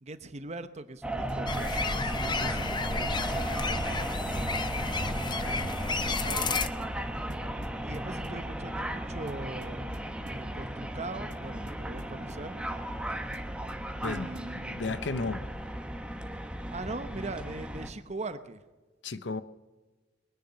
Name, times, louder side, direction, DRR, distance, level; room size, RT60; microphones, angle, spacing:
voice 1, 0.0-3.9 4.3-4.8 5.1-6.6 7.8-10.0 10.3-12.6 14.0-14.8 16.7-18.6, right 2 dB, 40° right, 0.9 m, -41 dB
sound 1, 1.0-17.9, right 1 dB, 5° right, 1.2 m, -35 dB
sound 2, 1.3-1.5 1.8-2.0 2.3-2.5 2.8-2.9 3.3-3.5 3.8-4.0 4.3-4.5 4.8-5.0 5.3-5.5 5.8-6.0 6.3-6.5 6.8-7.0 7.3-8.4 9.3-10.5 11.3-12.5 13.3-14.6, right 2 dB, 70° right, 1.4 m, -52 dB
sound 3, 1.5-6.7, left 3 dB, 25° left, 0.8 m, -32 dB
voice 2, 14.0-15.4 19.0-19.4, left 3 dB, 85° left, 0.8 m, -34 dB
21.5 x 10.0 x 5.7 m
head